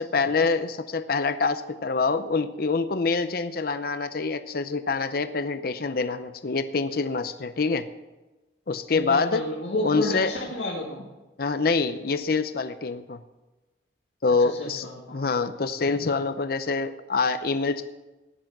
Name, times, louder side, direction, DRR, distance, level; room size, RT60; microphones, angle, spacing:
voice 1, 0.0-7.9 8.7-9.5 9.8-10.3 11.4-13.2 14.2-17.8, left 4 dB, 55° left, 10 dB, 0.6 m, -26 dB
voice 2, 8.9-11.0 14.4-15.3, left 1 dB, 85° left, -2 dB, 2.0 m, -31 dB
15.0 x 10.5 x 6.0 m, 1.1 s
head